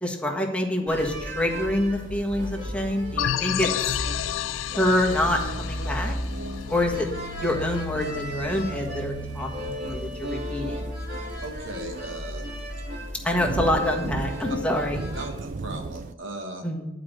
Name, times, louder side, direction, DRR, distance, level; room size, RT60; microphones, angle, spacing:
voice 1, 0.0-4.0 4.7-6.1 6.7-7.1 7.4-10.8 13.2-15.0 16.6-16.9, left 1 dB, 5° left, 0 dB, 1.4 m, -26 dB
sound 1, 0.9-15.2, equal, 60° right, 3.5 m, -34 dB
sound 2, 1.6-3.5 3.9-4.6 4.9-5.1 5.8-5.9 6.2-6.6 7.1-7.2 8.0-8.1 8.4-10.1 10.5-10.6 10.9-11.7 12.4-12.6 12.9-16.1, right 3 dB, 40° right, 0.4 m, -35 dB
sound 3, 3.2-7.6, left 12 dB, 90° left, 0.3 m, -31 dB
voice 2, 11.4-12.4 15.2-16.6, right 2 dB, 85° right, 3 dB, 1.9 m, -37 dB
11.0 x 5.0 x 7.7 m, 1.0 s
head